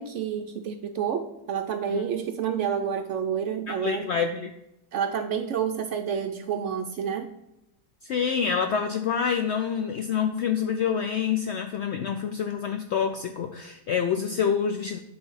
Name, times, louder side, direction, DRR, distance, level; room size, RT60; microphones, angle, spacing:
voice 1, 0.0-4.1 4.9-7.3, right 8 dB, 70° right, 7 dB, 0.7 m, -29 dB
voice 2, 3.7-4.5 8.0-15.0, left 7 dB, 70° left, 6 dB, 0.6 m, -27 dB
9.6 x 3.5 x 5.5 m, 0.88 s
omnidirectional pair, 1.6 m